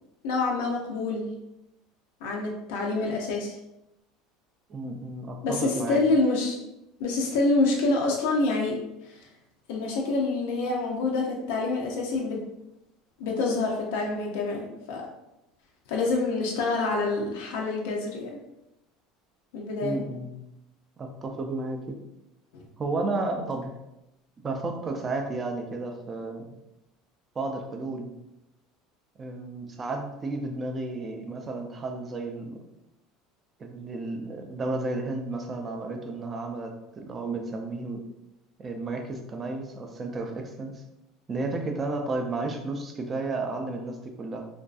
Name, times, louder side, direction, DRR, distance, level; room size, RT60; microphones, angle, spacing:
voice 1, 0.2-1.3 2.2-3.6 5.4-6.6 7.0-9.2 9.7-12.4 13.2-15.1 15.9-18.3 19.5-20.0 22.5-22.6, left 3 dB, 85° left, -1 dB, 0.4 m, -27 dB
voice 2, 4.7-6.0 19.8-20.3 21.0-22.0 22.8-23.7 24.4-26.5 27.3-28.1 29.2-32.6 33.6-38.0 38.6-40.8 41.3-44.5, right 2 dB, 20° right, 3 dB, 0.3 m, -32 dB
2.5 x 2.3 x 2.3 m, 0.89 s
cardioid pair, 160°, 0 cm